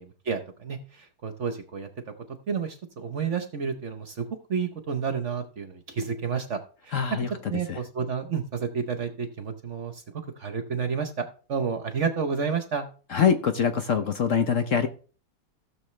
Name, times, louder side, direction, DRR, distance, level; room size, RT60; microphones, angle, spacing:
voice 1, 0.0-2.1 2.5-7.0 7.5-10.0 10.4-12.8, right 6 dB, 50° right, 8 dB, 1.0 m, -30 dB
voice 2, 6.9-7.3 7.7-7.8 13.1-14.9, left 7 dB, 55° left, 8 dB, 1.0 m, -24 dB
16.0 x 7.1 x 3.2 m, 0.40 s
omnidirectional pair, 1.9 m